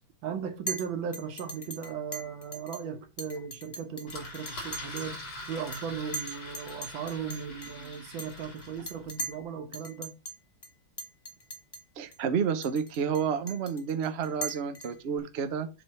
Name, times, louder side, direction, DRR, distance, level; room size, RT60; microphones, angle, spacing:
voice 1, 0.2-10.1, right 7 dB, 70° right, 1.8 m, -37 dB
Chink clink, 0.7-0.9 1.1-2.8 3.2-5.1 5.4-5.8 6.1-9.4 9.7-10.3 10.6-10.7 11.0-11.8 12.1-12.2 12.6-15.2, right 1 dB, 25° left, 0.5 m, -39 dB
Engine, 4.1-9.3, left 1 dB, 60° left, 4.4 m, -43 dB
voice 2, 12.0-15.7, right 7 dB, 85° right, 0.5 m, -30 dB
7.6 x 3.4 x 5.6 m
omnidirectional pair, 2.3 m